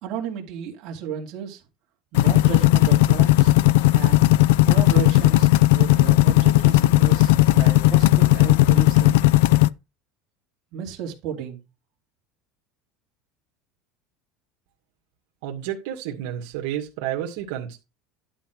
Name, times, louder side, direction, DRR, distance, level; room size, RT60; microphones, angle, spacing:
voice 1, 0.0-1.6 2.1-3.6 3.9-4.2 4.6-9.2 10.7-11.6, right 8 dB, 40° right, 2.6 m, -33 dB
sound 1, 2.1-9.7, left 18 dB, 80° left, 0.4 m, -16 dB
voice 2, 15.4-17.8, right 11 dB, 70° right, 2.2 m, -30 dB
11.5 x 5.4 x 4.7 m
cardioid pair, 170°, 0 cm